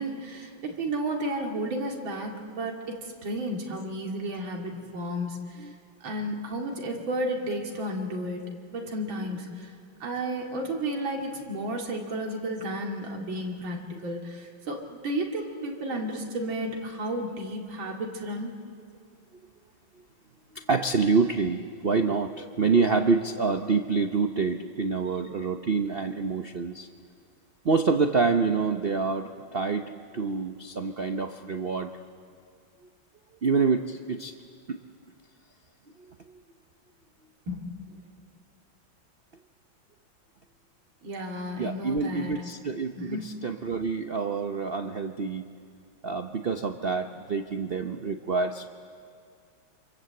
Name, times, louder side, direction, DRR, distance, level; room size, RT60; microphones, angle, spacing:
voice 1, 0.0-2.7 3.2-5.4 6.0-8.4 8.7-9.7 10.0-18.5 37.5-37.9 41.0-42.3 43.0-43.2, right 1 dB, 70° right, 1 dB, 3.2 m, -32 dB
voice 2, 20.5-26.9 27.6-31.9 33.4-34.3 34.7-34.8 41.6-45.4 46.0-48.7, right 4 dB, 85° right, 6 dB, 0.5 m, -27 dB
27.5 x 25.5 x 7.9 m, 2.3 s
omnidirectional pair, 2.3 m